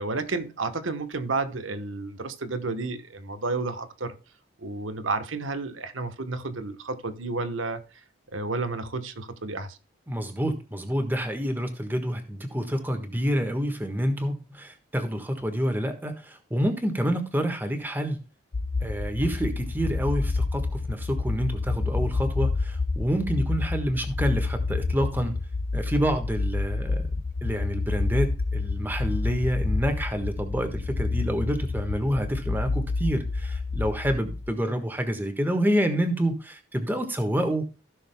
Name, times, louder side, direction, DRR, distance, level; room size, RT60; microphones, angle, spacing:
voice 1, 0.0-4.1 4.6-7.8 8.3-9.8, right 3 dB, 80° right, 1.1 m, -31 dB
voice 2, 10.1-18.2 18.8-25.3 25.7-37.6, equal, 10° right, 1.4 m, -28 dB
sound 1, 18.5-34.5, left 3 dB, 55° left, 0.5 m, -29 dB
16.0 x 6.4 x 2.2 m
head